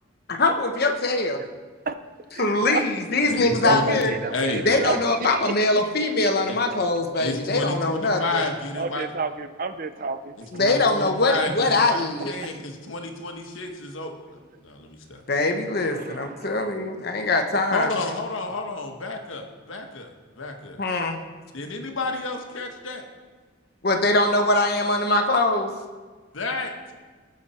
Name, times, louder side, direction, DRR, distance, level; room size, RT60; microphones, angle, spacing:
voice 1, 0.3-1.4 2.4-4.1 4.6-8.4 10.5-12.4 15.3-17.9 20.8-21.2 23.8-25.7, left 2 dB, 50° left, 5 dB, 1.0 m, -22 dB
voice 2, 2.3-2.8 3.6-5.8 6.2-6.5 8.8-10.3 15.9-16.2, right 4 dB, 45° right, 10 dB, 0.5 m, -29 dB
voice 3, 3.3-4.9 6.5-6.6 7.2-9.1 10.4-14.1 14.6-15.2 17.7-20.8 21.5-23.0 26.3-26.7, left 2 dB, 75° left, 3 dB, 1.3 m, -30 dB
18.0 x 6.5 x 4.3 m, 1.4 s
head